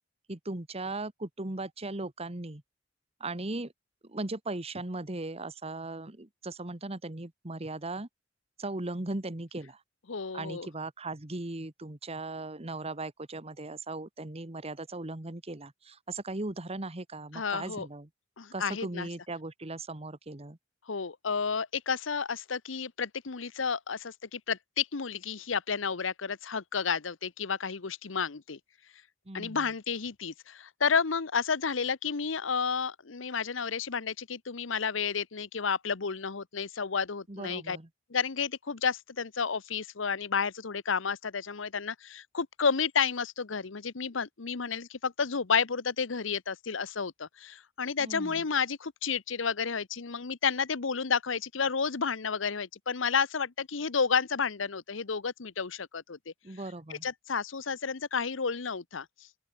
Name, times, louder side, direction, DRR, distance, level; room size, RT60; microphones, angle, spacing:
voice 1, 0.3-2.6 3.2-3.7 4.0-8.1 8.6-9.8 10.3-18.1 18.5-20.6 29.3-29.7 37.3-37.9 48.0-48.4 56.4-57.1, right 2 dB, 30° right, 1.5 m, -38 dB
voice 2, 10.1-10.7 17.3-17.9 18.4-19.1 20.9-28.6 29.3-37.8 38.1-56.3 56.9-59.1, left 6 dB, 80° left, 0.9 m, -31 dB
open air
head